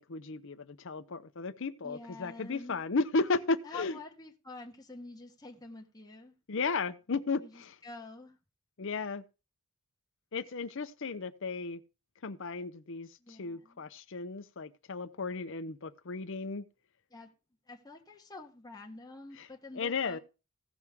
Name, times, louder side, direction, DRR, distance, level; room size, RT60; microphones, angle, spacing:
voice 1, 0.0-4.0 6.5-7.7 8.8-9.2 10.3-11.8 12.2-16.6 19.8-20.2, left 4 dB, 60° left, 0.7 m, -34 dB
voice 2, 1.8-2.8 3.6-6.4 7.4-8.4 13.2-13.8 17.1-17.3 17.7-20.2, left 3 dB, 15° left, 1.1 m, -47 dB
16.0 x 6.2 x 3.6 m
head